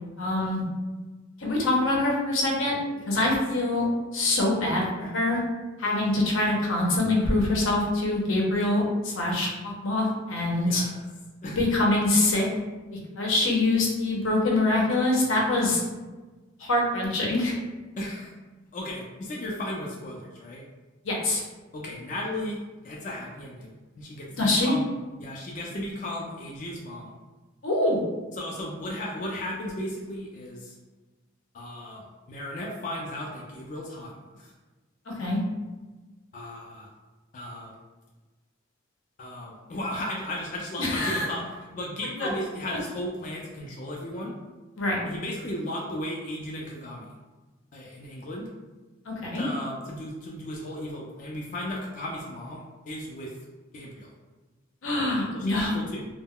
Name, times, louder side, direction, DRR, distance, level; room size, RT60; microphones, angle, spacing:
voice 1, 0.2-0.6 1.4-2.7 3.1-3.9 4.1-5.4 5.8-10.8 11.5-12.5 13.2-15.8 16.6-17.5 21.0-21.4 24.4-24.7 27.6-28.0 35.1-35.4 40.8-41.3 42.2-42.3 42.7-42.8 44.8-45.0 49.1-49.4 54.8-55.7, left 2 dB, 85° left, -2 dB, 0.7 m, -24 dB
voice 2, 10.7-11.0 11.4-11.6 18.0-18.3 18.7-20.6 21.7-24.9 25.2-27.1 28.4-30.8 31.5-34.5 36.3-36.9 37.3-37.7 39.2-44.3 45.0-47.1 47.7-48.5 49.3-53.3 53.7-54.1 55.3-56.1, left 1 dB, 40° left, -3 dB, 0.3 m, -35 dB
2.2 x 2.0 x 3.6 m, 1.2 s
head